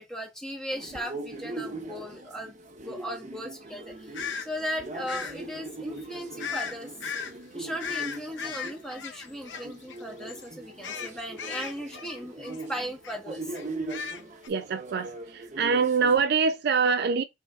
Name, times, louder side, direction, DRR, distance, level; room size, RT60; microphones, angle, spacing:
voice 1, 0.0-6.9 7.5-13.6, equal, 5° left, 1.2 m, -37 dB
sound 1, 0.7-16.2, right 2 dB, 40° right, 0.7 m, -41 dB
sound 2, 4.1-4.5 5.1-5.4 6.4-6.7 7.0-7.3 7.8-10.0 10.3-10.5 10.8-12.7 13.0-13.2 13.5-14.5, left 7 dB, 80° left, 0.7 m, -36 dB
voice 2, 14.5-15.1 15.6-17.2, right 5 dB, 60° right, 0.4 m, -24 dB
5.6 x 3.7 x 2.4 m
head